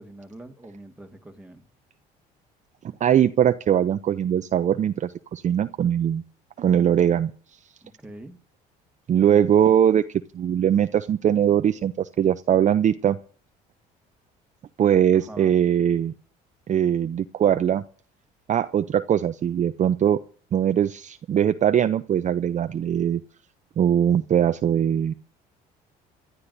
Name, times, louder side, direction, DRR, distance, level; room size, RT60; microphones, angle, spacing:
voice 1, 0.0-1.7 7.8-8.4 15.1-15.6, right 1 dB, 5° right, 1.7 m, -44 dB
voice 2, 3.0-6.2 6.6-7.3 9.1-10.0 10.3-13.2 14.8-16.1 16.7-17.8 18.5-20.2 20.5-23.2 23.8-25.1, right 9 dB, 40° right, 0.5 m, -21 dB
28.0 x 12.0 x 2.6 m
hypercardioid pair, 70°, 20 cm